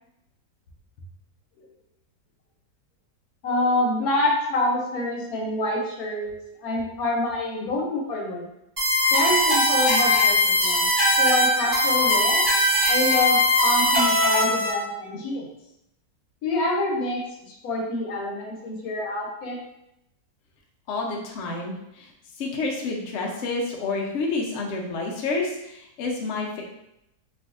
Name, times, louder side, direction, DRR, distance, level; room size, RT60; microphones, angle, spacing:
voice 1, 3.4-6.3 6.6-8.5 9.1-10.9 11.2-12.4 12.9-15.4 16.4-19.6, left 2 dB, 65° left, -1 dB, 1.0 m, -26 dB
sound 1, 8.8-14.7, left 1 dB, 35° right, 1.0 m, -20 dB
voice 2, 20.9-22.1 22.4-26.6, left 3 dB, 85° left, -1 dB, 0.6 m, -29 dB
3.2 x 2.6 x 2.4 m, 0.83 s
omnidirectional pair, 1.9 m